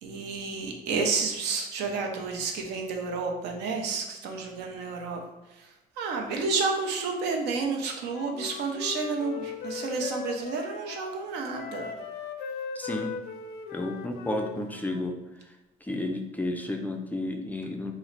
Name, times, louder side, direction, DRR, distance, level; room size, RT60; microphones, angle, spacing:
voice 1, 0.0-5.2 5.5-5.7 6.0-11.9, right 4 dB, 80° right, 2 dB, 0.7 m, -30 dB
Wind instrument woodwind instrument, 8.1-11.1 11.5-15.0, left 6 dB, 80° left, 0.4 m, -38 dB
voice 2, 12.8-13.1 13.7-15.1 15.8-17.9, left 1 dB, 10° left, 3 dB, 0.3 m, -32 dB
3.1 x 2.1 x 3.8 m, 1.0 s
cardioid pair, 110°, 17 cm